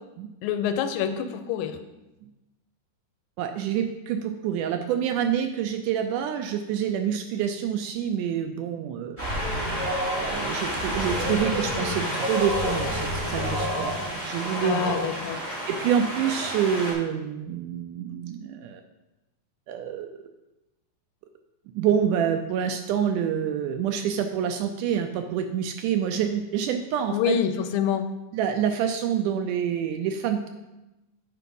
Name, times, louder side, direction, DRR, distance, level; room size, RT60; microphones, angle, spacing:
voice 1, 0.4-1.8 14.6-15.4 27.1-28.1, left 8 dB, 85° left, 8 dB, 2.3 m, -26 dB
voice 2, 3.4-9.2 10.1-14.0 14.2-15.0 15.7-18.8 19.7-20.1 21.8-27.4 28.3-30.5, right 8 dB, 80° right, 6 dB, 1.9 m, -27 dB
Wind, 9.2-16.9, equal, 5° right, 2.3 m, -29 dB
8.3 x 4.6 x 5.3 m, 1.0 s
omnidirectional pair, 4.0 m